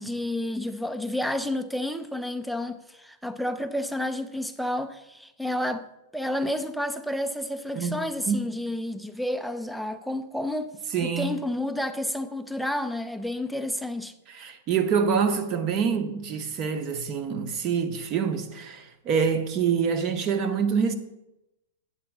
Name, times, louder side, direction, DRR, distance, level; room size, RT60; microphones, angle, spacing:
voice 1, 0.0-5.8 6.1-10.7 11.0-14.1, left 1 dB, ahead, 0.4 m, -30 dB
voice 2, 7.8-8.4 10.9-11.3 14.3-20.9, right 6 dB, 30° right, 0.7 m, -26 dB
8.7 x 4.3 x 7.1 m
supercardioid pair, 160°, 0 cm